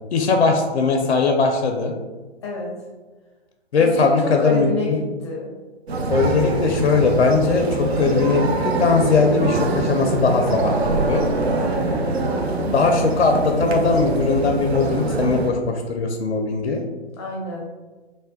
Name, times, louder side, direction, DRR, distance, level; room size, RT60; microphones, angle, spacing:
voice 1, 0.1-1.9 3.7-5.0 6.1-11.2 12.7-16.8, left 4 dB, 80° left, 3 dB, 0.5 m, -20 dB
voice 2, 2.4-2.7 3.8-5.5 11.6-13.0 17.2-17.7, left 2 dB, 25° left, -2 dB, 0.5 m, -29 dB
sound 1, 5.9-15.5, right 2 dB, 70° right, 0.6 m, -23 dB
3.3 x 2.1 x 3.8 m, 1.3 s
figure-of-eight pair, 130°, 33 cm